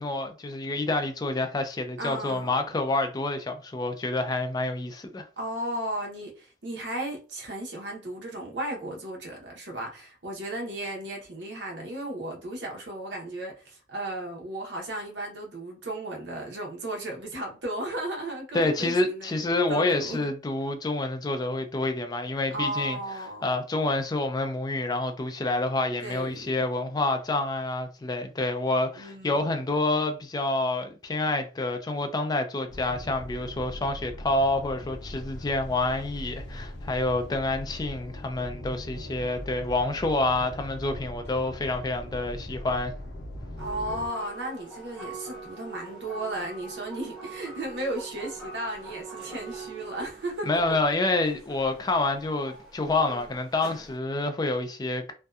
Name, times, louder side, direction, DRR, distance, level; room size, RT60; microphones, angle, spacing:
voice 1, 0.0-5.3 18.5-23.0 23.4-42.9 50.4-55.1, left 2 dB, 20° left, 0.3 m, -28 dB
voice 2, 2.0-2.5 5.4-19.4 19.7-20.3 22.5-23.6 26.0-26.6 28.9-29.5 43.6-50.5, right 1 dB, 70° right, 0.8 m, -35 dB
sound 1, 32.7-44.1, left 1 dB, 60° left, 0.6 m, -40 dB
sound 2, 43.6-54.0, right 3 dB, 5° right, 0.7 m, -43 dB
2.6 x 2.2 x 2.3 m
head